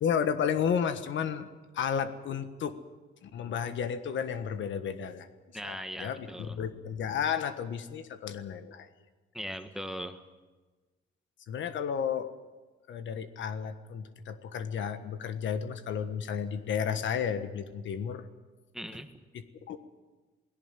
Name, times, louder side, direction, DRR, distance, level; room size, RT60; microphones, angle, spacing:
voice 1, 0.0-1.5 1.7-2.7 3.2-5.3 5.6-8.9 11.5-12.3 12.9-18.2 19.3-19.8, left 7 dB, 70° left, 11 dB, 1.4 m, -32 dB
voice 2, 5.5-6.6 9.3-10.2 18.7-19.1, equal, ahead, 8 dB, 1.6 m, -39 dB
18.0 x 17.5 x 9.2 m, 1.2 s
cardioid pair, 90°, 20 cm